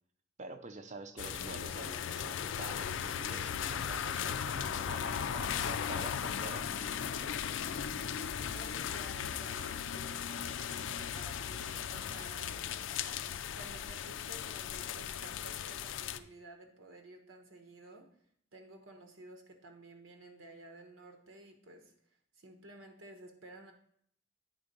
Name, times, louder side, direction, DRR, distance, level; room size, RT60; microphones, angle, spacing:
voice 1, 0.4-6.7, right 3 dB, 35° right, 8 dB, 0.6 m, -48 dB
sound 1, 1.2-16.2, left 8 dB, 65° left, 0.4 m, -37 dB
voice 2, 8.5-12.9 13.6-18.1 18.5-21.9 22.3-23.7, right 2 dB, 80° right, 5 dB, 1.1 m, -53 dB
8.9 x 3.7 x 5.2 m, 0.65 s
head